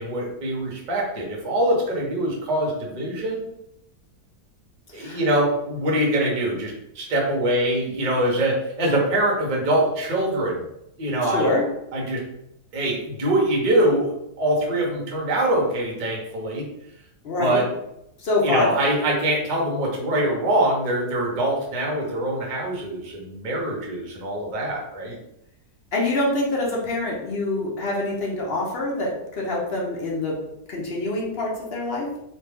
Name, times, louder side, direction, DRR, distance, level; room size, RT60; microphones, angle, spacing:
voice 1, 0.0-3.4 4.9-10.6 11.0-11.5 11.9-12.2 12.7-16.7 17.4-17.7 18.4-25.2, right 1 dB, 40° right, -2 dB, 0.7 m, -23 dB
voice 2, 11.2-11.6 17.2-17.6 18.2-18.7 25.9-30.4 30.7-32.1, left 2 dB, 50° left, -3 dB, 0.8 m, -25 dB
3.2 x 2.4 x 3.4 m, 0.83 s
omnidirectional pair, 1.7 m